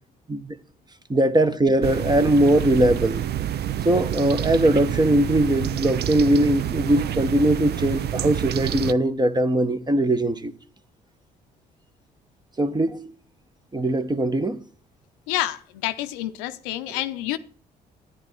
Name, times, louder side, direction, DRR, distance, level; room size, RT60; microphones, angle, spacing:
voice 1, 1.1-3.2 3.8-10.5 12.6-13.0 13.7-14.6, right 1 dB, 20° right, 1.3 m, -20 dB
sound 1, 1.8-8.9, right 11 dB, 55° right, 0.6 m, -28 dB
voice 2, 15.3-17.4, left 14 dB, 80° left, 0.7 m, -28 dB
10.0 x 10.0 x 4.5 m
hypercardioid pair, 50°, 20 cm